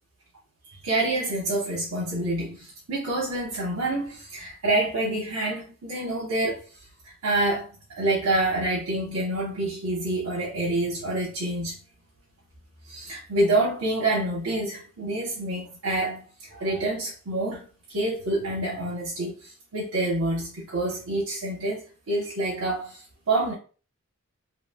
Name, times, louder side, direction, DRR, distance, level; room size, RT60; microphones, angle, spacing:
voice 1, 0.8-6.6 7.2-11.8 12.9-23.0 23.3-23.5, right 2 dB, 80° right, 0.9 m, -27 dB
3.0 x 2.8 x 2.2 m
head